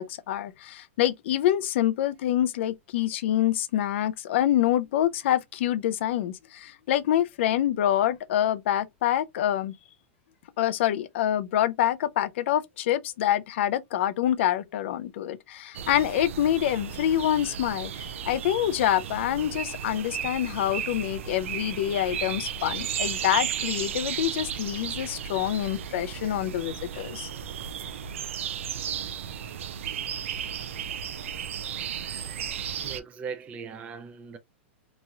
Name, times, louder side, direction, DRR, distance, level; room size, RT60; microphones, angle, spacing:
voice 1, 0.0-9.7 10.6-27.3, left 12 dB, 65° left, 0.4 m, -26 dB
sound 1, 15.7-33.0, right 8 dB, 85° right, 0.4 m, -34 dB
voice 2, 32.8-34.4, right 6 dB, 20° right, 0.3 m, -39 dB
3.0 x 2.3 x 2.7 m
hypercardioid pair, 135°, 7 cm